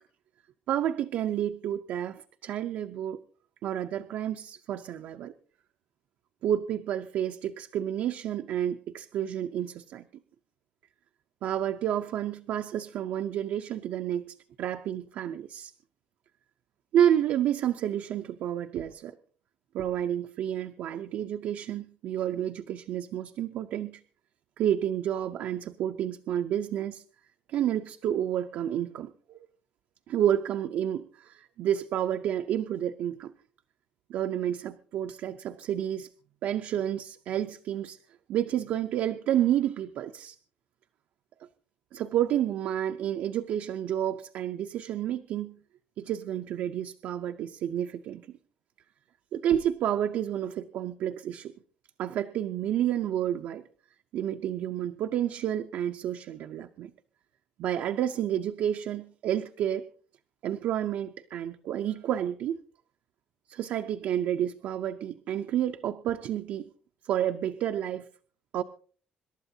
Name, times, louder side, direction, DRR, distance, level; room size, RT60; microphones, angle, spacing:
voice 1, 0.7-3.2 3.6-5.3 6.4-10.1 11.4-15.7 16.9-19.2 19.7-24.0 24.6-27.0 27.5-29.4 30.1-33.3 34.1-36.1 36.4-38.0 38.3-40.4 41.9-45.5 46.0-48.3 49.3-51.5 52.0-53.6 54.1-56.9 57.6-59.9 60.4-62.6 63.5-66.7 67.0-68.1 68.5-68.6, right 10 dB, 65° right, 6 dB, 0.6 m, -30 dB
26.5 x 12.0 x 2.8 m, 0.41 s
cardioid pair, 175°, 3 cm